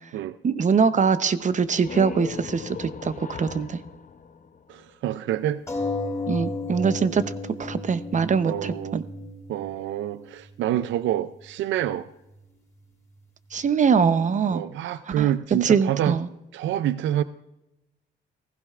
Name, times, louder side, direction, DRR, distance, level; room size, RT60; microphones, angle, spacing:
voice 1, 0.4-3.8 6.3-7.3 7.6-9.0 13.5-14.6 15.2-16.3, right 6 dB, 40° right, 13 dB, 0.7 m, -23 dB
sound 1, 1.5-5.1, left 6 dB, 40° left, 0.7 m, -39 dB
voice 2, 4.7-5.6 8.5-9.0 9.5-12.1 14.5-16.2 16.5-17.2, right 12 dB, 70° right, 14 dB, 0.4 m, -27 dB
sound 2, 5.7-10.7 11.4-11.5 11.8-11.9, left 2 dB, 15° left, 3.9 m, -33 dB
16.0 x 15.5 x 2.4 m, 0.96 s
cardioid pair, 90°, 20 cm